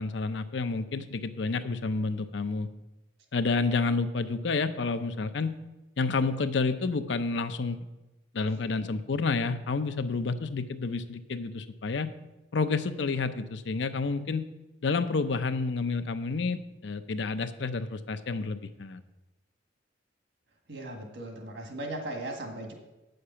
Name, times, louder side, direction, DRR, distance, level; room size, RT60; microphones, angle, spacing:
voice 1, 0.0-2.7 3.3-5.5 6.0-7.9 8.3-12.1 12.5-14.4 14.8-19.0, left 4 dB, 70° left, 10 dB, 0.6 m, -29 dB
voice 2, 20.7-22.7, right 1 dB, 65° right, 3 dB, 1.7 m, -37 dB
8.7 x 6.6 x 5.6 m, 1.0 s
head